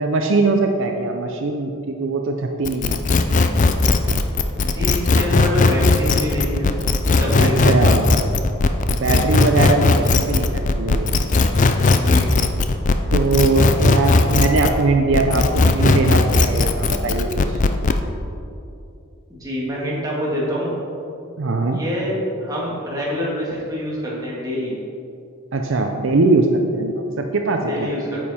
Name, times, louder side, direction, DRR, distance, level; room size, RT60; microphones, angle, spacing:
voice 1, 0.0-3.0 7.4-8.1 8.6-11.1 13.1-17.6 21.4-21.8 25.5-27.9, right 3 dB, 60° right, 3 dB, 0.5 m, -21 dB
sound 1, 2.6-14.8 15.1-18.0, left 3 dB, 35° left, 0.4 m, -17 dB
voice 2, 4.6-6.7 7.0-7.6 11.9-12.2 19.3-20.7 21.7-24.8 27.7-28.2, equal, 15° right, -6 dB, 2.0 m, -25 dB
9.3 x 7.4 x 4.3 m, 2.7 s
head